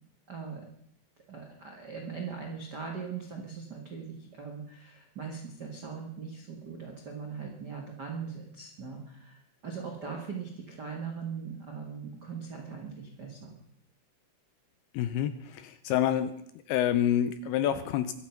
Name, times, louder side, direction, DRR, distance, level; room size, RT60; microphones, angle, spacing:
voice 1, 0.3-0.7 1.3-13.5, right 6 dB, 60° right, 1 dB, 1.0 m, -40 dB
voice 2, 14.9-16.4 16.7-18.1, left 10 dB, 80° left, 12 dB, 2.4 m, -27 dB
23.5 x 8.1 x 5.9 m, 0.70 s
omnidirectional pair, 5.0 m